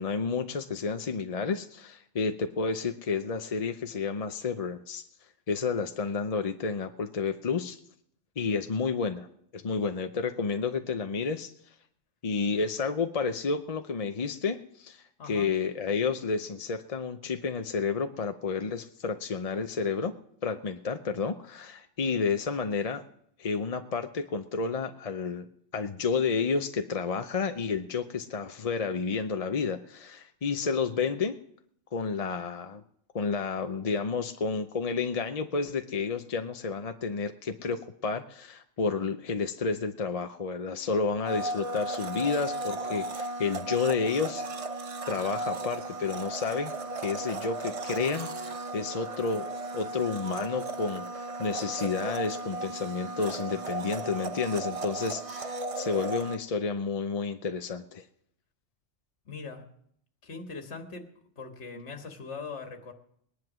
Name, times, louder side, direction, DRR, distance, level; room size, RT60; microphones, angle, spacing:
voice 1, 0.0-5.0 5.5-7.8 8.4-9.3 9.5-11.5 12.2-20.1 20.4-23.0 23.4-25.4 25.7-31.3 31.9-32.8 33.1-44.4 45.1-46.7 47.0-49.5 49.7-58.0, left 5 dB, 40° left, 7 dB, 0.6 m, -30 dB
voice 2, 15.2-15.5 59.3-59.7 60.2-61.1 61.4-62.9, left 4 dB, 65° left, 4 dB, 1.8 m, -41 dB
Domestic sounds home sounds, 41.2-56.4, right 2 dB, 35° right, 0.6 m, -35 dB
19.5 x 10.5 x 6.2 m, 0.70 s
omnidirectional pair, 1.2 m